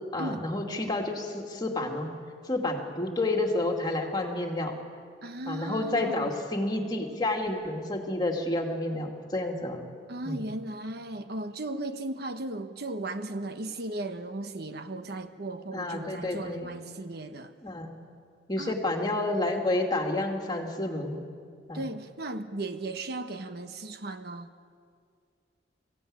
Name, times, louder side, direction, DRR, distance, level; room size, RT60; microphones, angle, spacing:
voice 1, 0.1-2.1 2.4-4.8 5.5-9.8 10.2-10.4 15.7-16.7 17.6-17.9 18.5-21.2 21.7-21.8, left 2 dB, 25° left, 2 dB, 2.4 m, -30 dB
voice 2, 5.2-6.3 10.1-17.5 18.6-18.8 21.7-24.5, right 2 dB, 60° right, 8 dB, 1.1 m, -36 dB
23.5 x 16.0 x 8.8 m, 2.2 s
head